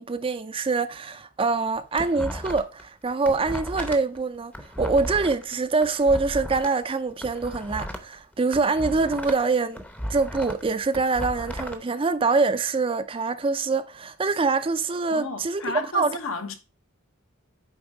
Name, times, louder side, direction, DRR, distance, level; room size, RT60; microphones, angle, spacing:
voice 1, 0.0-9.8 10.1-16.2, right 4 dB, 25° right, 0.4 m, -25 dB
sound 1, 1.6-2.8 3.1-6.7 7.1-9.5 9.7-11.8, equal, 5° left, 0.7 m, -35 dB
voice 2, 15.1-16.6, left 3 dB, 70° left, 1.1 m, -32 dB
8.8 x 3.6 x 4.8 m
head